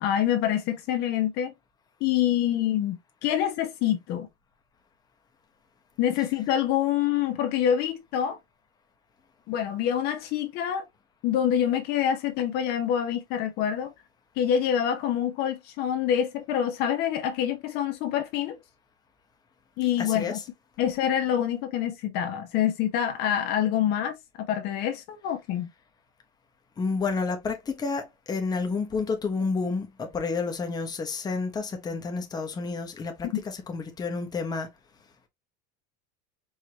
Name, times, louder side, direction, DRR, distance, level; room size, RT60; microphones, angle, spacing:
voice 1, 0.0-1.5 2.0-4.3 6.0-8.4 9.5-10.8 11.2-13.9 14.4-18.6 19.8-20.4 20.8-25.7 33.2-33.4, left 10 dB, 50° left, 0.8 m, -26 dB
voice 2, 20.0-20.4 26.8-34.7, left 4 dB, 20° left, 1.0 m, -30 dB
4.9 x 2.8 x 2.8 m
supercardioid pair, 140°, 21 cm